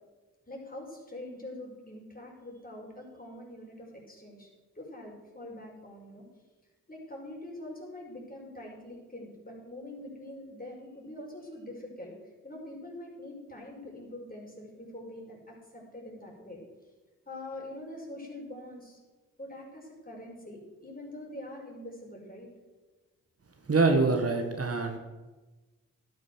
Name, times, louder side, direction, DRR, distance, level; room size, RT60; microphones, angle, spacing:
voice 1, 0.5-4.5 4.8-6.2 6.9-12.1 12.4-16.6 17.3-19.0 19.4-22.5, left 1 dB, 25° left, -1 dB, 5.2 m, -44 dB
voice 2, 23.7-25.0, right 3 dB, 45° right, 5 dB, 1.6 m, -25 dB
12.0 x 9.5 x 6.3 m, 1.2 s
supercardioid pair, 40°, 32 cm